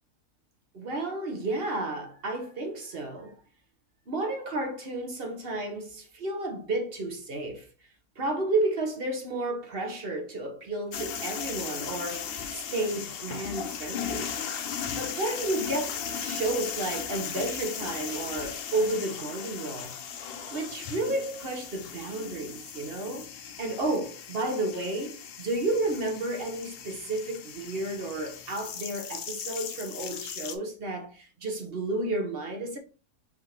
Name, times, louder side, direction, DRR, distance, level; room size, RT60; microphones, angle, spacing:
voice 1, 0.7-3.4 4.1-7.7 8.2-14.3 14.9-19.9 20.5-32.8, right 2 dB, 45° right, 1.0 m, -32 dB
sound 1, 10.9-30.6, left 7 dB, 80° left, 0.5 m, -37 dB
4.3 x 3.5 x 3.2 m
omnidirectional pair, 1.7 m